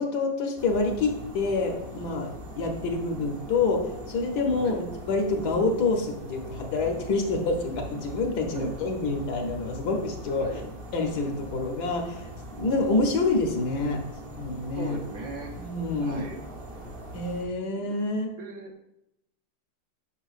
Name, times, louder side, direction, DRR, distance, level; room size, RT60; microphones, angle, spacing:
voice 1, 0.0-2.3 2.6-10.5 10.9-12.3 12.6-14.0 14.4-15.0 15.6-16.3 17.1-18.3, left 3 dB, 65° left, 3 dB, 1.3 m, -27 dB
sound 1, 0.6-17.5, equal, 40° right, 0.9 m, -41 dB
voice 2, 14.7-15.5 16.0-16.4 17.7-18.0 18.3-18.7, right 3 dB, 60° right, 1 dB, 1.2 m, -38 dB
9.0 x 5.7 x 2.4 m, 0.83 s
omnidirectional pair, 2.0 m